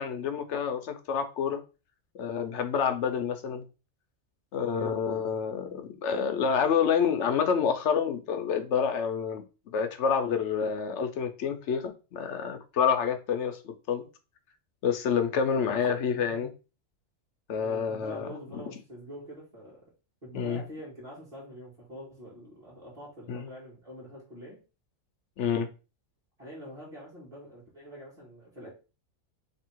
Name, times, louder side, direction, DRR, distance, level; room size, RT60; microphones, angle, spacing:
voice 1, 0.0-1.6 2.2-3.6 4.5-14.0 14.8-16.5 17.5-18.6 20.3-20.6 23.3-23.5 25.4-25.7, left 7 dB, 65° left, 0.9 m, -28 dB
voice 2, 4.6-5.0 15.3-16.4 17.6-19.8 20.2-24.6 26.4-28.7, equal, 25° right, 1.7 m, -45 dB
3.3 x 2.7 x 4.5 m
omnidirectional pair, 1.4 m